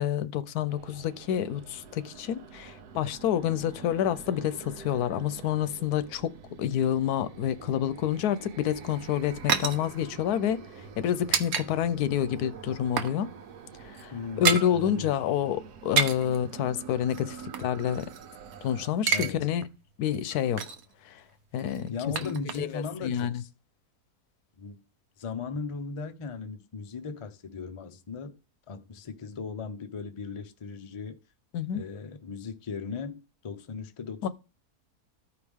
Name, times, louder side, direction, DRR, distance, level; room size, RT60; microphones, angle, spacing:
voice 1, 0.0-6.3 6.6-10.6 11.0-13.3 13.9-14.1 14.4-18.1 18.6-19.6 20.0-20.6 21.1-21.2 21.5-21.9 22.2-23.4 31.5-31.8 34.2-34.3, left 10 dB, 90° left, 1.2 m, -28 dB
sound 1, 0.7-18.9, right 6 dB, 90° right, 1.4 m, -47 dB
sound 2, 8.7-11.7 12.0-12.1 12.5-13.2 13.4-13.6 13.9-14.7 15.7-16.4 17.1-18.6 18.8-19.3 19.6-19.7 20.1-20.9 21.6-22.9 23.1-23.2, right 6 dB, 70° right, 1.2 m, -30 dB
voice 2, 14.1-15.1 19.1-19.5 21.9-23.5 24.6-24.8 25.2-28.4 28.7-31.2 31.7-34.3, left 4 dB, 45° left, 0.4 m, -37 dB
14.0 x 4.9 x 3.5 m
omnidirectional pair, 1.6 m